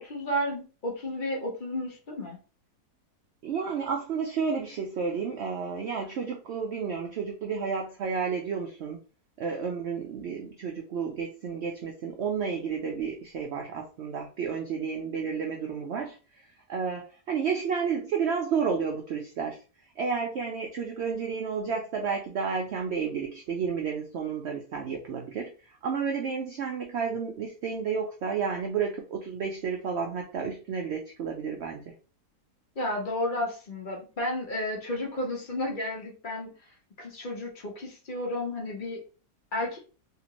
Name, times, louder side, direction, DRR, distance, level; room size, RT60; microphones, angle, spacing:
voice 1, 0.0-2.4 32.8-36.5 37.0-39.0 39.5-39.8, left 1 dB, 35° left, -1 dB, 0.9 m, -32 dB
voice 2, 3.4-9.0 9.4-16.2 16.7-19.6 20.0-25.5 25.8-31.8, right 6 dB, 85° right, 2 dB, 0.5 m, -31 dB
2.8 x 2.5 x 2.9 m, 0.36 s
omnidirectional pair, 1.7 m